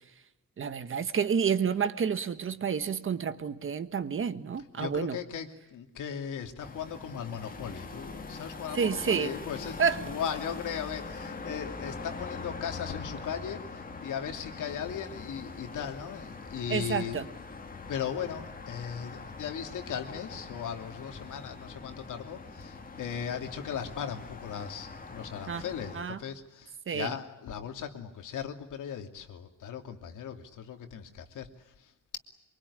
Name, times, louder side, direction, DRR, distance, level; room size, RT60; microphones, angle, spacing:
voice 1, 0.6-5.2 8.7-9.3 9.8-10.0 16.7-17.2 25.5-25.6 25.9-26.2 26.9-27.1, right 6 dB, 40° right, 11 dB, 1.4 m, -29 dB
voice 2, 4.8-17.3 17.9-32.2, left 8 dB, 75° left, 5 dB, 2.8 m, -38 dB
sound 1, 6.6-26.0, left 4 dB, 25° left, 2.2 m, -42 dB
24.5 x 23.5 x 9.9 m, 0.97 s
cardioid pair, 135°, 32 cm